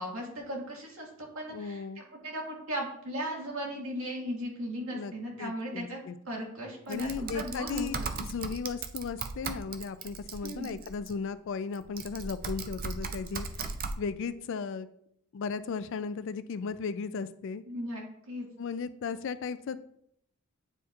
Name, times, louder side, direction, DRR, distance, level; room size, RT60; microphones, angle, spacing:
voice 1, 0.0-6.0 6.3-8.1 10.4-10.7 17.7-18.4, equal, 75° right, -2 dB, 1.8 m, -37 dB
voice 2, 1.5-2.0 4.9-5.1 5.4-6.2 6.9-13.7 14.0-14.9 15.3-17.6 18.6-19.8, left 5 dB, 65° left, 13 dB, 0.4 m, -36 dB
Typing, 6.9-11.1 11.7-14.0, right 4 dB, 45° right, 0.4 m, -38 dB
8.9 x 4.3 x 2.4 m, 0.71 s
head